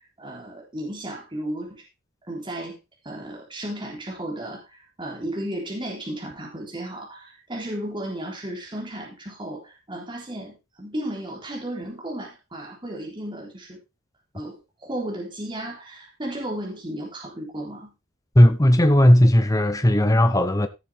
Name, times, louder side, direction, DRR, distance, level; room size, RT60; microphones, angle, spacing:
voice 1, 0.2-1.8 2.3-2.8 3.0-13.8 14.3-17.9, right 1 dB, 25° right, 3.6 m, -34 dB
voice 2, 18.4-20.7, left 1 dB, 15° left, 0.9 m, -16 dB
16.0 x 7.3 x 3.6 m
head